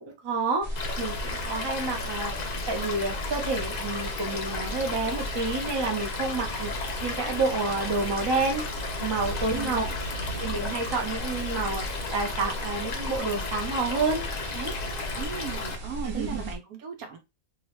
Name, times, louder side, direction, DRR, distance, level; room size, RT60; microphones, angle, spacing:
voice 1, 0.0-0.7 1.0-2.3 2.7-8.6 9.0-9.8 10.4-14.2 14.5-14.7 16.0-16.5, right 3 dB, 25° right, 0.6 m, -29 dB
sound 1, 0.6-16.6, right 1 dB, 50° right, 1.3 m, -36 dB
Stream / Liquid, 0.8-15.8, left 4 dB, 60° left, 0.4 m, -34 dB
voice 2, 9.4-10.6 15.1-17.2, right 6 dB, 85° right, 1.3 m, -38 dB
3.0 x 3.0 x 3.0 m
omnidirectional pair, 1.5 m